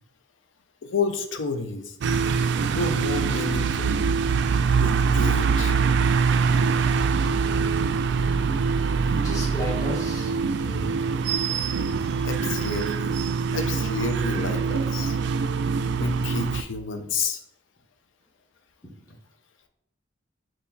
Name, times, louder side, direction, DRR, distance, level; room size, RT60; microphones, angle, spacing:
voice 1, 0.8-2.0 2.6-4.0 4.7-5.8 12.2-13.2 13.5-15.2 15.9-17.4, left 4 dB, 80° left, 7 dB, 0.6 m, -30 dB
sound 1, 2.0-16.6, right 5 dB, 60° right, 0.3 m, -24 dB
voice 2, 9.2-10.3 10.6-10.9, equal, 20° left, -3 dB, 1.3 m, -33 dB
4.2 x 3.1 x 3.9 m, 0.73 s
head